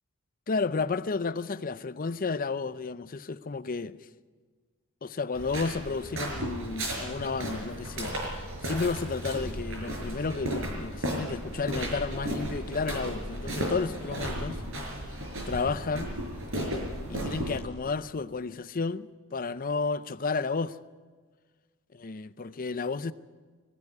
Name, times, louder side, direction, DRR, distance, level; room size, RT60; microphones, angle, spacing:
voice 1, 0.5-4.0 5.0-14.6 15.5-16.1 17.1-20.8 21.9-23.1, left 4 dB, 40° left, 0.6 m, -32 dB
sound 1, 5.3-17.6, right 1 dB, 65° right, 5.2 m, -34 dB
20.5 x 14.5 x 9.6 m
head